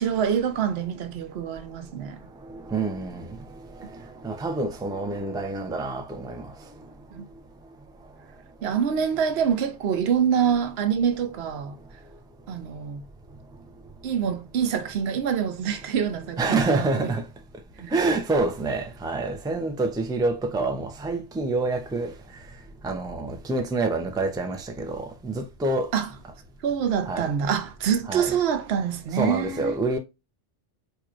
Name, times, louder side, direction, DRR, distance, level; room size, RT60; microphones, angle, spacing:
voice 1, 0.0-2.2 7.1-7.2 8.6-11.8 12.5-13.0 14.0-17.1 17.8-17.9 25.9-26.1 26.6-29.7, right 8 dB, 70° right, 0.9 m, -26 dB
voice 2, 2.2-7.2 8.6-8.8 16.4-17.3 17.5-22.5 22.8-25.9 27.0-27.3 28.1-28.4 29.1-30.0, right 3 dB, 5° right, 0.4 m, -28 dB
4.5 x 2.7 x 2.4 m
omnidirectional pair, 1.1 m